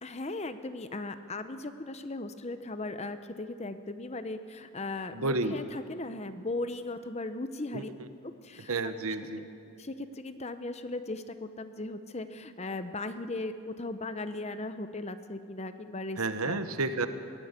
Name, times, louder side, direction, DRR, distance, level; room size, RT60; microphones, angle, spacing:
voice 1, 0.0-7.9 8.2-8.7 9.4-9.5 9.8-16.6, left 2 dB, 30° left, 10 dB, 0.8 m, -37 dB
voice 2, 5.1-5.6 7.7-7.8 8.7-9.4 16.2-17.1, right 3 dB, 75° right, 9 dB, 1.3 m, -30 dB
23.0 x 17.0 x 8.3 m, 2.6 s
head